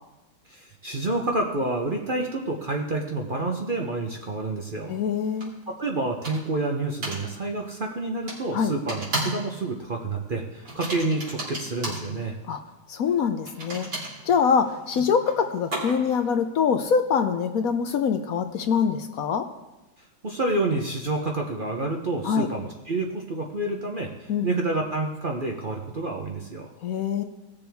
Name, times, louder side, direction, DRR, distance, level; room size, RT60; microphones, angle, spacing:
voice 1, 0.5-4.9 5.7-12.4 20.2-26.7, right 2 dB, 40° right, 1 dB, 0.8 m, -28 dB
voice 2, 4.9-5.5 8.5-8.7 12.5-12.6 12.9-13.9 14.2-19.4 22.2-22.5 24.3-24.5 26.8-27.2, left 6 dB, 65° left, 7 dB, 1.0 m, -24 dB
sound 1, 5.4-5.5 6.2-6.6 7.0-7.2 8.3-8.4 8.9-9.5 9.7-10.0 10.6-12.1 13.4-16.2, right 1 dB, 90° right, 3.9 m, -33 dB
18.0 x 6.9 x 3.5 m, 1.1 s
omnidirectional pair, 1.8 m